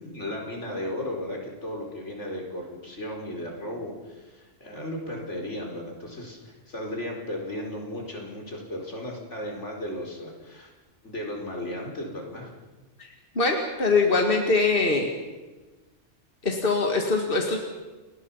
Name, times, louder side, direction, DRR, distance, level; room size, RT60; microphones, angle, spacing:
voice 1, 0.0-10.7 11.0-12.5, left 1 dB, 80° left, 0 dB, 5.1 m, -35 dB
voice 2, 13.4-15.1 16.4-17.6, left 3 dB, 50° left, 2 dB, 2.4 m, -22 dB
30.0 x 20.5 x 5.8 m, 1.2 s
omnidirectional pair, 1.2 m